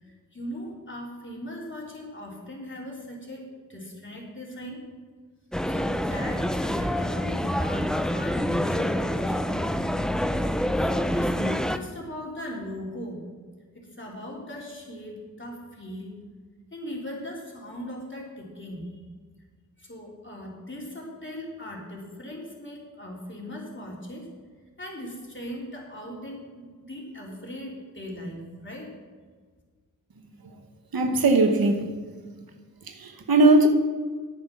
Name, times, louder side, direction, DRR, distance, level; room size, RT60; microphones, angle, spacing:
voice 1, 0.0-4.8 5.7-9.7 10.8-13.2 13.7-16.2 16.7-18.9 19.8-24.3 24.8-28.9, left 1 dB, 35° left, 3.4 m, -39 dB
sound 1, 5.5-11.8, equal, ahead, 0.6 m, -26 dB
voice 2, 30.9-32.0 32.9-33.7, right 2 dB, 85° right, 1.1 m, -19 dB
9.4 x 8.9 x 6.1 m
cardioid pair, 45°, 35 cm